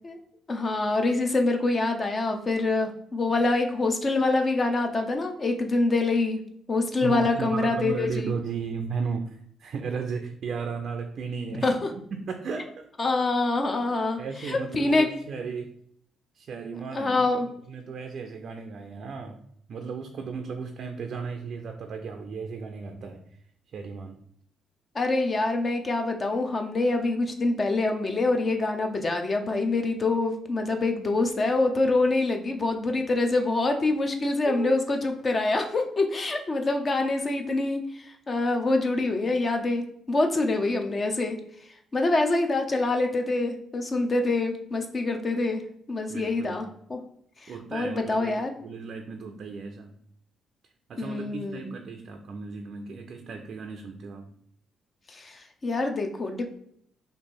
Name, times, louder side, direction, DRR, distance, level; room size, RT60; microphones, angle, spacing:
voice 1, 0.5-6.4 6.7-8.3 11.6-11.9 13.0-15.1 16.9-17.5 24.9-41.4 41.9-45.6 45.9-47.0 47.4-48.5 51.0-51.7 55.1-56.5, left 2 dB, 35° left, 4 dB, 0.5 m, -25 dB
voice 2, 7.0-11.7 12.1-12.9 14.2-15.7 16.3-17.3 17.7-19.4 19.7-23.2 23.7-24.2 34.5-34.7 46.1-46.6 47.5-49.9 50.9-54.3, right 5 dB, 60° right, 5 dB, 0.4 m, -35 dB
3.0 x 2.6 x 4.3 m, 0.67 s
cardioid pair, 90°, 0 cm